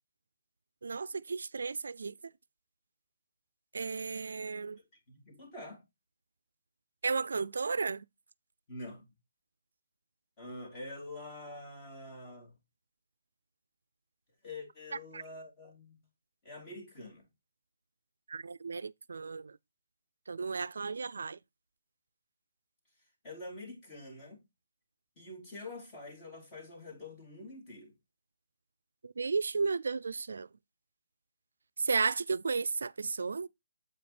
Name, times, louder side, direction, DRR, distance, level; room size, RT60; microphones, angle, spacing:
voice 1, 0.8-2.3 3.7-4.8 7.0-8.0 15.1-15.2 18.3-19.6 20.3-21.4 29.0-30.5 31.8-33.5, right 4 dB, 80° right, 0.4 m, -34 dB
voice 2, 5.1-5.8 8.7-9.1 10.4-12.6 14.4-16.0 16.4-17.3 23.2-24.4 25.2-27.9, left 2 dB, 20° left, 3.2 m, -46 dB
7.9 x 5.1 x 4.3 m
hypercardioid pair, 170°, 0 cm